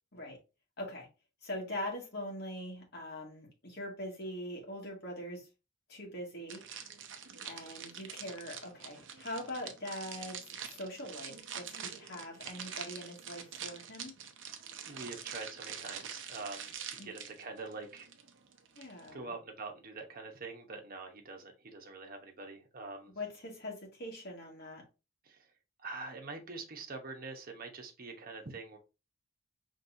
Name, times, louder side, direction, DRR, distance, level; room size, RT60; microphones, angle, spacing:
voice 1, 0.8-1.1 1.4-5.5 5.9-6.6 7.4-14.1 17.0-17.1 18.8-19.3 23.2-24.8, left 1 dB, 55° left, 2.0 m, -42 dB
sound 1, 6.5-19.1, right 8 dB, 65° right, 0.7 m, -45 dB
voice 2, 14.8-18.1 19.1-23.1 25.3-25.5 25.8-28.8, right 3 dB, 50° right, 1.1 m, -45 dB
5.3 x 3.5 x 2.7 m
head